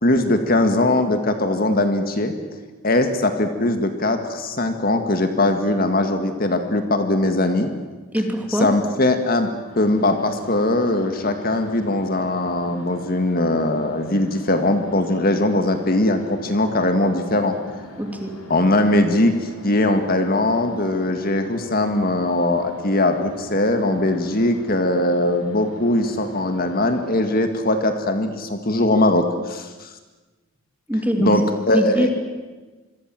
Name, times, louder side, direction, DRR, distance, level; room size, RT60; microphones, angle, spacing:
voice 1, 0.0-2.3 2.8-7.7 8.5-9.5 9.8-17.6 18.5-29.9 31.2-32.1, left 1 dB, 45° left, 7 dB, 1.9 m, -20 dB
voice 2, 8.1-8.7 18.0-18.3 30.9-32.1, equal, 10° right, 4 dB, 3.0 m, -23 dB
sound 1, 9.6-27.1, left 1 dB, 80° left, 5.2 m, -41 dB
27.0 x 23.0 x 7.7 m, 1.2 s
head